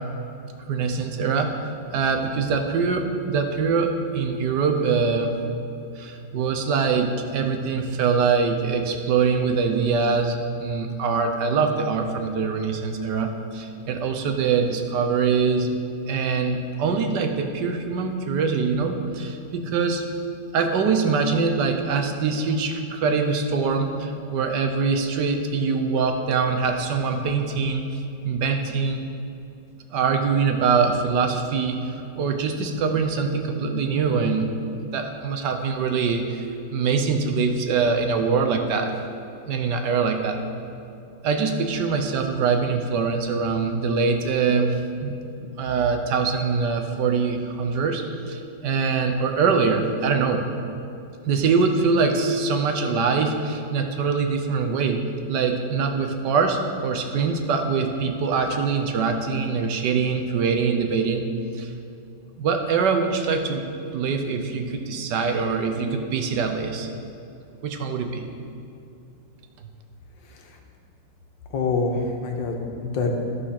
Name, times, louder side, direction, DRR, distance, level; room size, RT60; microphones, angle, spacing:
voice 1, 0.7-1.6 1.9-5.4 6.0-15.8 16.1-20.0 20.5-29.0 29.9-34.5 34.8-36.4 36.7-38.9 39.5-40.4 41.2-45.1 45.6-50.4 51.3-55.0 55.3-61.3 61.6-61.7 62.4-63.7 63.9-66.9 67.6-68.2, right 5 dB, 70° right, 5 dB, 1.3 m, -23 dB
voice 2, 71.5-73.1, left 4 dB, 80° left, 2 dB, 1.8 m, -25 dB
13.5 x 4.9 x 5.8 m, 2.6 s
omnidirectional pair, 2.0 m